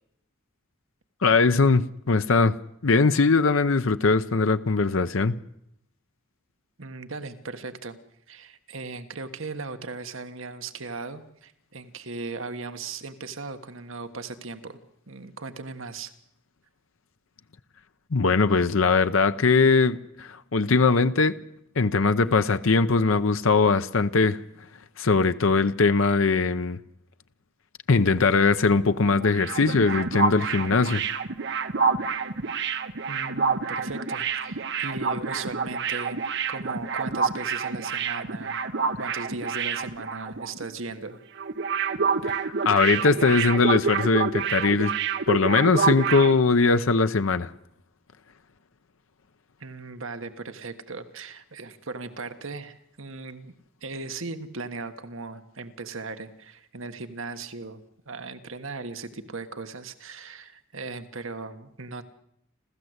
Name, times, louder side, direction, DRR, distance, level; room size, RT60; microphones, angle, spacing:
voice 1, 1.2-2.5 2.8-5.4 18.1-21.3 21.8-24.4 25.0-26.8 27.9-31.0 42.2-45.0 45.3-47.5, left 4 dB, 70° left, 0.7 m, -21 dB
voice 2, 6.8-8.0 8.3-14.8 15.1-16.1 33.1-36.2 36.5-38.6 39.0-41.2 49.6-53.5 53.8-62.0, right 3 dB, 70° right, 1.5 m, -37 dB
sound 1, 29.1-40.7 40.9-41.1 41.4-46.3, right 5 dB, 55° right, 1.0 m, -28 dB
29.0 x 13.5 x 8.0 m
head